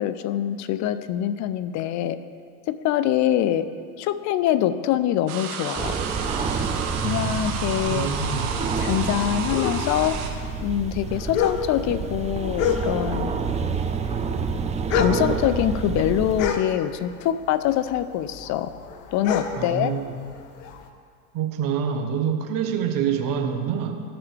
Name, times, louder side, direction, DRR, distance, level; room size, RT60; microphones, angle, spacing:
voice 1, 0.0-2.2 2.7-3.7 4.0-6.0 7.0-8.1 8.8-10.2 10.6-13.3 14.9-18.7 19.1-19.9, left 11 dB, 40° left, 13 dB, 0.5 m, -24 dB
sound 1, 5.3-10.3, right 6 dB, 60° right, 1.6 m, -32 dB
sound 2, 5.8-16.5, right 5 dB, 15° right, 0.5 m, -28 dB
voice 2, 7.9-8.5 19.6-20.2 21.3-24.0, right 7 dB, 45° right, 5 dB, 1.2 m, -26 dB
sound 3, 9.5-13.3 13.6-17.3 17.6-20.8, left 8 dB, 60° left, 1.0 m, -29 dB
15.0 x 5.9 x 3.3 m, 2.1 s
hypercardioid pair, 75°, 46 cm